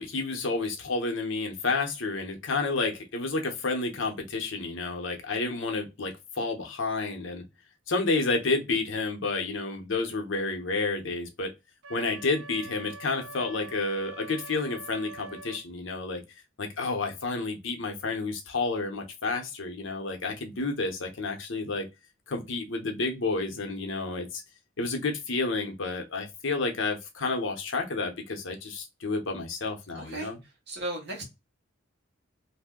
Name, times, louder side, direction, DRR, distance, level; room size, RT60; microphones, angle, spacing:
voice 1, 0.0-7.4 7.9-11.5 11.9-16.2 16.6-21.9 22.3-24.4 24.8-30.4, left 3 dB, 70° left, 0.8 m, -30 dB
Wind instrument woodwind instrument, 11.8-15.6, right 3 dB, 80° right, 0.5 m, -44 dB
voice 2, 29.9-31.2, right 1 dB, 55° right, 1.1 m, -36 dB
2.7 x 2.1 x 3.6 m
head